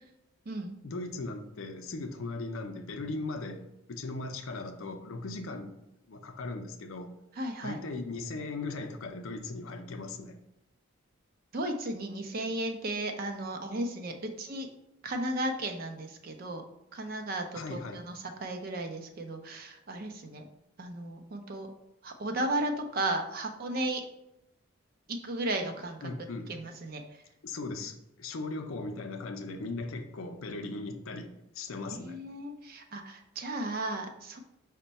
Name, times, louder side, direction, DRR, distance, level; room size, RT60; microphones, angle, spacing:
voice 1, 0.8-5.7 6.1-7.2 7.6-10.4 17.5-18.0 26.0-26.5 27.4-32.2, left 3 dB, 70° left, 7 dB, 0.5 m, -38 dB
voice 2, 7.4-7.8 11.5-14.7 15.0-16.6 16.9-20.4 20.8-21.7 22.0-24.0 25.1-26.1 26.5-27.0 31.9-34.4, right 1 dB, 45° right, 5 dB, 0.5 m, -35 dB
5.3 x 2.2 x 4.0 m, 0.86 s
head